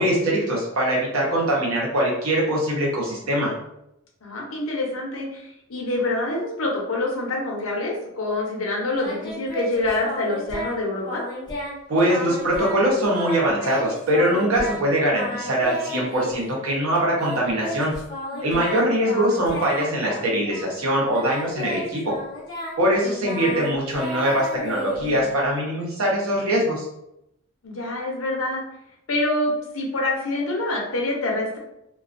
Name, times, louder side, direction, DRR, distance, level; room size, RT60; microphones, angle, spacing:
voice 1, 0.0-3.5 11.9-17.9 18.4-22.1 22.8-26.8, right 1 dB, 80° right, -3 dB, 0.8 m, -22 dB
voice 2, 4.2-5.4 5.7-11.2 18.3-19.0 23.0-23.1 27.6-28.6 29.1-31.6, left 2 dB, 75° left, -1 dB, 0.7 m, -26 dB
Singing, 9.0-10.8 11.0-11.8 12.0-12.8 13.0-14.8 15.1-16.6 17.2-20.8 21.1-25.5, left 1 dB, 20° left, 0.8 m, -33 dB
2.3 x 2.3 x 2.5 m, 0.82 s
head